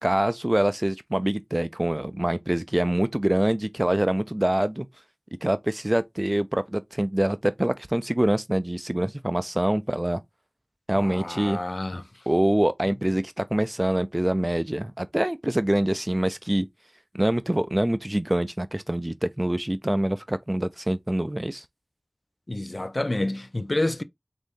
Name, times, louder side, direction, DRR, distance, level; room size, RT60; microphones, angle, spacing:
voice 1, 0.0-4.9 5.4-10.2 10.9-11.6 12.3-16.7 17.1-21.6, right 1 dB, 25° right, 0.3 m, -25 dB
voice 2, 10.9-12.0 22.5-24.0, left 1 dB, 50° left, 0.5 m, -28 dB
3.7 x 2.6 x 3.5 m
wide cardioid pair, 45°, 0 cm